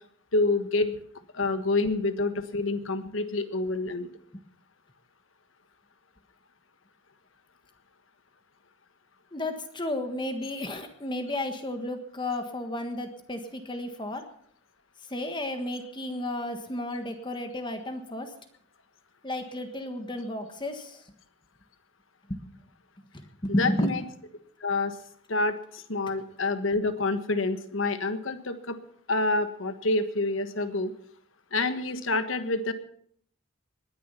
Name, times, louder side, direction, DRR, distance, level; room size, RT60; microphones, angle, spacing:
voice 1, 0.3-0.9 1.3-4.1 23.5-24.0 24.6-24.9 25.3-28.8 29.1-30.9 31.5-32.7, left 2 dB, 80° left, 10 dB, 1.4 m, -27 dB
voice 2, 9.3-14.2 15.1-18.3 19.2-21.0 22.3-22.6 23.4-23.9, left 1 dB, 25° left, 7 dB, 1.4 m, -32 dB
20.0 x 10.0 x 5.7 m, 0.65 s
head